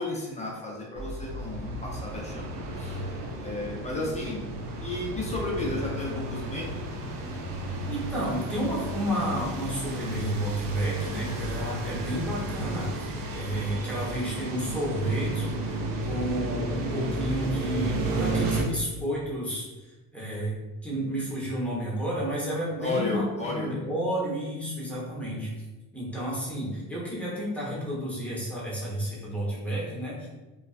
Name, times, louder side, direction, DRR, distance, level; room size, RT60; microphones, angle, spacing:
voice 1, 0.0-3.0 3.4-4.4 4.8-6.7 22.8-23.7, left 2 dB, 20° left, -4 dB, 0.5 m, -33 dB
sound 1, 1.0-18.6, right 1 dB, 60° right, 0.5 m, -32 dB
voice 2, 7.9-13.1 13.3-15.8 16.1-20.5 20.8-25.5 25.9-30.3, right 1 dB, 5° left, -6 dB, 0.8 m, -31 dB
2.4 x 2.3 x 2.4 m, 1.1 s
cardioid pair, 110°, 39 cm